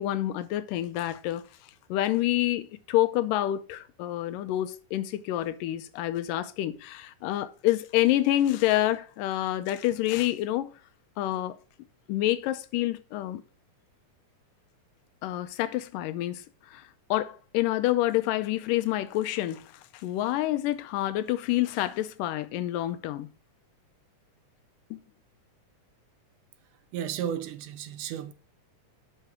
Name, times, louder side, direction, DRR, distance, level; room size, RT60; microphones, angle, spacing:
voice 1, 0.0-1.4 1.9-10.7 11.2-11.6 12.1-13.4 15.2-16.4 16.7-16.8 17.1-23.3 24.9-25.0, left 14 dB, 90° left, 2.3 m, -28 dB
voice 2, 26.9-28.3, right 9 dB, 75° right, 2.1 m, -33 dB
6.7 x 5.8 x 5.9 m
omnidirectional pair, 3.7 m